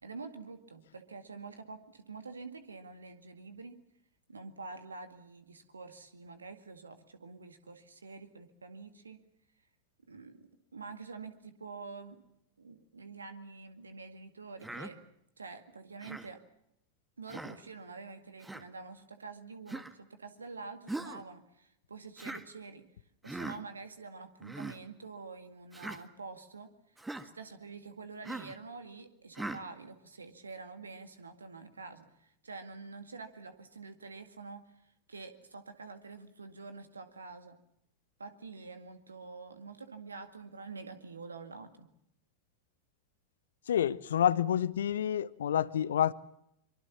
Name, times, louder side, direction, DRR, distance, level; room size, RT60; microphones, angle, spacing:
voice 1, 0.0-3.8 4.3-9.2 10.1-12.2 12.6-15.0 15.4-16.4 17.2-22.9 23.2-37.6 38.2-41.9, right 4 dB, 75° right, 2.1 m, -47 dB
Human voice, 14.6-14.9 16.0-16.3 17.3-17.6 18.4-18.6 19.7-19.9 20.9-21.2 22.2-22.5 23.3-23.6 24.4-24.8 25.7-26.0 27.0-27.3 28.2-28.6 29.4-29.6, right 2 dB, 5° right, 1.7 m, -40 dB
voice 2, 43.7-46.1, left 10 dB, 65° left, 0.9 m, -28 dB
24.5 x 24.0 x 7.2 m
figure-of-eight pair, 90°, 0 cm